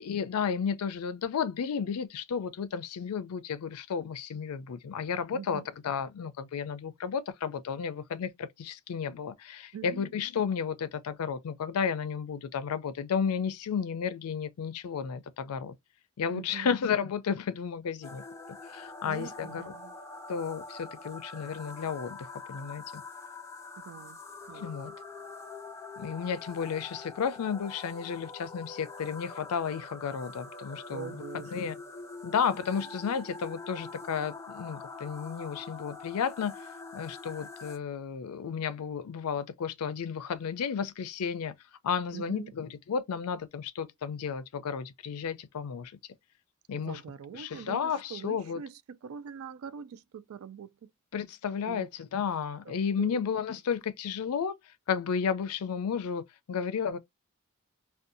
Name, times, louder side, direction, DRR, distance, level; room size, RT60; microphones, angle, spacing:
voice 1, 0.0-15.7 16.2-18.2 18.7-19.6 20.3-23.0 24.5-24.9 26.0-31.2 31.5-31.7 32.2-36.5 36.9-41.5 41.8-45.9 46.7-47.0 47.3-48.6 51.1-54.6 54.9-56.2 56.5-57.0, left 6 dB, 90° left, 0.4 m, -32 dB
voice 2, 5.3-5.7 9.7-10.1 16.3-16.7 19.1-19.9 23.8-24.2 24.5-24.7 30.9-31.8 42.1-42.5 46.7-50.9 51.7-51.9 52.7-53.2, right 7 dB, 70° right, 0.3 m, -43 dB
sound 1, 18.0-37.8, left 3 dB, 15° left, 0.4 m, -45 dB
2.5 x 2.2 x 2.6 m
head